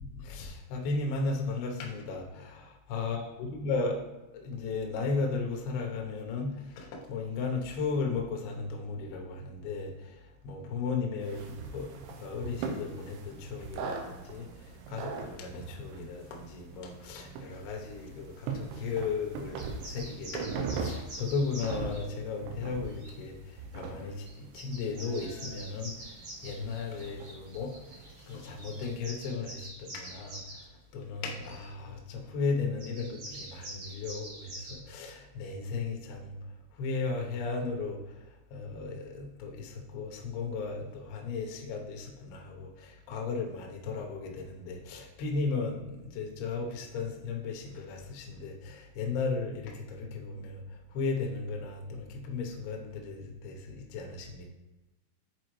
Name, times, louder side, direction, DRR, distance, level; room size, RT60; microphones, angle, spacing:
voice 1, 0.0-4.0 4.3-36.4 36.7-54.5, left 4 dB, 80° left, 0 dB, 2.4 m, -35 dB
sound 1, 11.2-29.0, right 4 dB, 80° right, 2.7 m, -41 dB
sound 2, 19.5-22.0 22.9-23.1 24.0-24.1 24.3-30.6 31.2-31.6 32.8-34.7, right 1 dB, 45° right, 3.1 m, -46 dB
7.6 x 4.4 x 3.1 m, 1.0 s
omnidirectional pair, 5.7 m